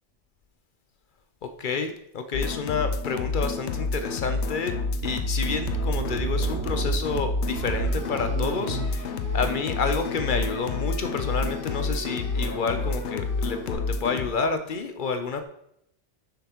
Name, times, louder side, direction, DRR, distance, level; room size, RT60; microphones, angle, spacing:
voice 1, 1.4-4.7 5.0-15.4, left 4 dB, 55° left, 7 dB, 0.7 m, -29 dB
sound 1, 2.3-14.3, left 4 dB, 85° left, 0.9 m, -29 dB
sound 2, 5.0-10.6, right 5 dB, 90° right, 1.1 m, -35 dB
sound 3, 7.5-13.7, left 1 dB, 20° left, 0.7 m, -42 dB
6.7 x 5.9 x 3.0 m, 0.75 s
omnidirectional pair, 1.1 m